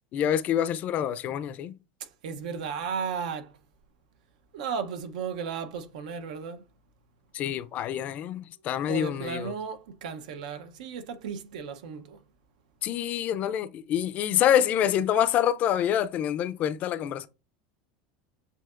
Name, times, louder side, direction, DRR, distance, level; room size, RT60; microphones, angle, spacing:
voice 1, 0.1-1.8 7.3-9.5 12.8-17.3, left 10 dB, 40° left, 0.4 m, -26 dB
voice 2, 2.2-3.5 4.5-6.6 8.9-12.2, right 6 dB, 85° right, 0.7 m, -34 dB
7.6 x 2.8 x 2.4 m
supercardioid pair, 145°, 4 cm